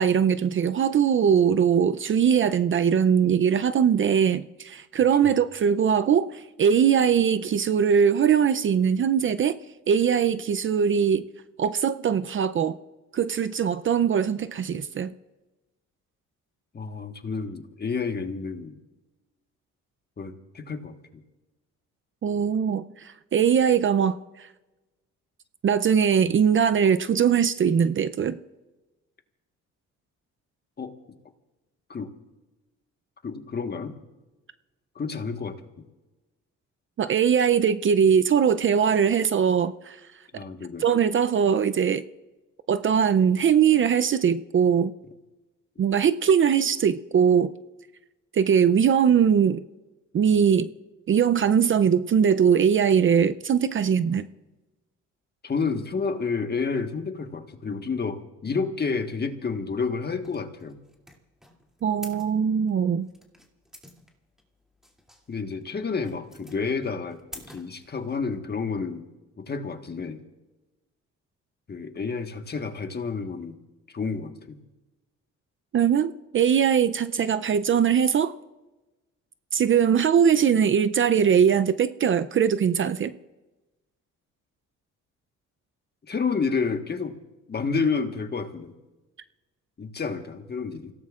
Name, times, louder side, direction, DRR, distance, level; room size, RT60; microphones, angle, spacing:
voice 1, 0.0-9.6 9.9-11.3 11.6-12.8 13.1-15.1 22.2-24.5 25.6-28.4 37.0-40.0 40.8-42.0 42.7-44.9 45.8-47.5 48.3-49.6 50.1-50.7 51.1-54.3 61.8-63.1 75.7-78.3 79.5-83.1, right 7 dB, 45° right, 12 dB, 0.5 m, -21 dB
voice 2, 16.7-18.8 20.2-20.9 30.8-30.9 31.9-32.1 33.2-34.0 34.9-35.6 40.3-40.8 55.4-60.8 65.3-69.0 69.4-70.2 71.7-73.6 73.9-74.6 86.1-87.2 87.5-88.7 89.8-90.9, left 5 dB, 35° left, 6 dB, 1.4 m, -30 dB
sound 1, 60.2-68.4, equal, ahead, 2.6 m, -48 dB
29.0 x 17.0 x 2.4 m, 1.1 s
cardioid pair, 90°, 30 cm